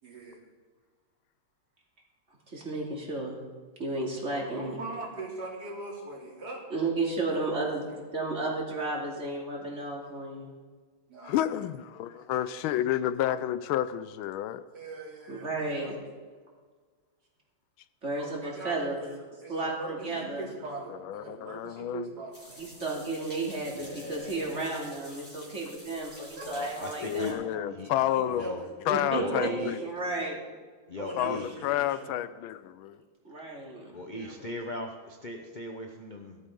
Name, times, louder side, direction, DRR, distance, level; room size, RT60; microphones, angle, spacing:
voice 1, 0.0-0.4 4.3-6.6 7.3-8.0 11.1-11.4 12.1-12.5 14.7-16.0 18.2-22.7 26.4-26.6 28.1-28.7 29.2-29.8 31.0-32.2 34.0-34.5, right 2 dB, 50° right, 3.8 m, -42 dB
voice 2, 2.5-3.4 3.8-4.8 6.7-7.8 8.1-10.5 15.3-15.9 18.0-19.0 19.5-20.5 22.6-27.6 28.9-29.5 29.8-30.4 33.2-33.9, right 2 dB, 35° right, 3.0 m, -33 dB
voice 3, 11.2-14.6 21.0-22.1 27.0-28.5 28.9-29.8 31.2-33.0, left 12 dB, 85° left, 1.4 m, -30 dB
sound 1, 22.3-27.3, equal, 5° left, 3.9 m, -49 dB
voice 4, 23.7-24.7 26.4-27.3 27.7-27.9 28.3-28.6 29.2-29.7 30.9-31.5 33.9-36.4, left 1 dB, 35° left, 0.8 m, -38 dB
17.5 x 12.5 x 3.8 m
omnidirectional pair, 2.2 m